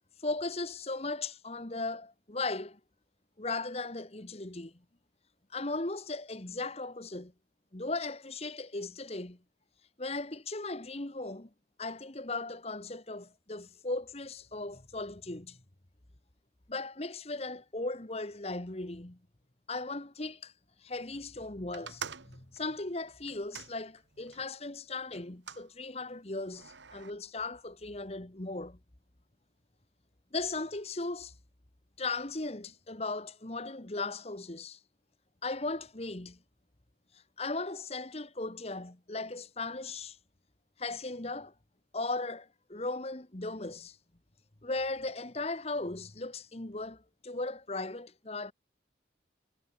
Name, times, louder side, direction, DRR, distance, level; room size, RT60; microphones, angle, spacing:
voice 1, 0.2-2.8 3.4-4.7 5.5-7.3 7.7-9.4 10.0-11.5 11.8-15.6 16.7-19.2 19.7-20.5 20.8-28.8 30.3-31.3 32.0-34.8 35.4-36.4 37.4-40.2 40.8-41.5 41.9-44.0 44.6-48.5, left 3 dB, 35° left, 1.4 m, -37 dB
sound 1, 21.7-24.5 25.1-25.7 26.5-27.1, right 6 dB, 85° right, 2.0 m, -46 dB
head